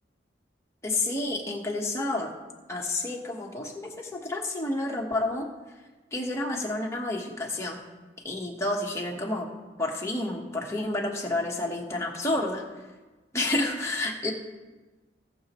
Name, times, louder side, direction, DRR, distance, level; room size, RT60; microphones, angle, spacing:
voice 1, 0.8-2.3 2.7-5.5 6.1-7.8 8.2-9.5 9.8-12.6 13.3-14.3, left 2 dB, 15° left, 0 dB, 1.2 m, -30 dB
18.0 x 6.9 x 3.0 m, 1.2 s
head